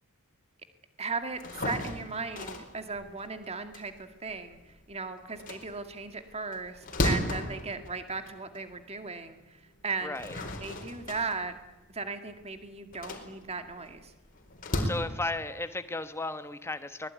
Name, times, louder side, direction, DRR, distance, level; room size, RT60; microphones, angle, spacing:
voice 1, 1.0-10.2 10.6-11.6 11.9-14.1, right 4 dB, 30° right, 8 dB, 2.1 m, -37 dB
sound 1, 1.3-4.8 5.2-8.7 9.2-9.3 9.9-14.9, left 1 dB, 40° left, 4.5 m, -35 dB
voice 2, 10.0-10.4 14.8-17.1, left 2 dB, 10° left, 10 dB, 1.4 m, -34 dB
23.5 x 21.0 x 9.5 m, 1.1 s
head